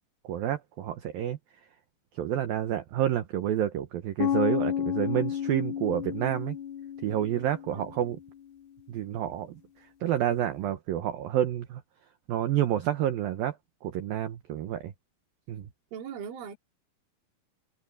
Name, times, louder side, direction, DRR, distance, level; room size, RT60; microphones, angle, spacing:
voice 1, 0.2-1.4 2.2-6.6 7.0-8.2 8.9-9.6 10.0-11.8 12.3-13.6 13.8-14.9 15.5-15.7, right 11 dB, 90° right, 2.0 m, -29 dB
sound 1, 4.2-8.1, left 9 dB, 80° left, 5.0 m, -31 dB
voice 2, 15.9-16.6, right 7 dB, 70° right, 6.3 m, -39 dB
omnidirectional pair, 5.7 m